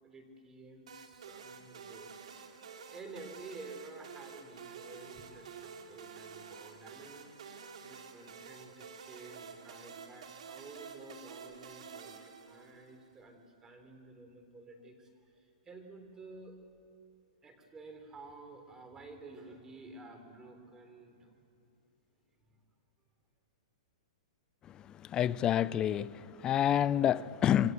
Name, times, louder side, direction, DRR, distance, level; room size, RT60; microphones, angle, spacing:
voice 1, 0.0-2.1 2.9-16.6 17.4-21.3 22.4-22.6, right 3 dB, 15° right, 3.6 m, -51 dB
sound 1, 0.9-13.1, right 6 dB, 80° right, 2.7 m, -50 dB
voice 2, 25.1-27.7, left 10 dB, 20° left, 0.5 m, -28 dB
27.5 x 24.0 x 8.1 m
hypercardioid pair, 145°, 4 cm